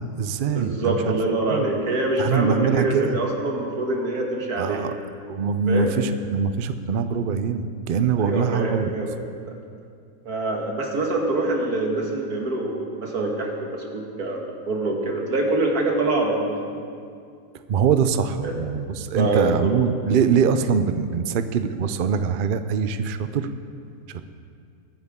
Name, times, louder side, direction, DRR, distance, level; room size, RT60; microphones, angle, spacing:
voice 1, 0.0-1.2 1.5-1.7 2.2-3.2 4.6-4.9 5.2-8.9 17.7-23.5 24.1-24.2, right 6 dB, 85° right, 10 dB, 0.4 m, -23 dB
voice 2, 0.5-4.8 5.7-5.9 8.2-9.2 9.5-9.6 10.3-16.8 18.4-18.6 19.2-19.8, right 2 dB, 65° right, 0 dB, 2.2 m, -25 dB
21.0 x 9.9 x 3.7 m, 2.3 s
omnidirectional pair, 1.7 m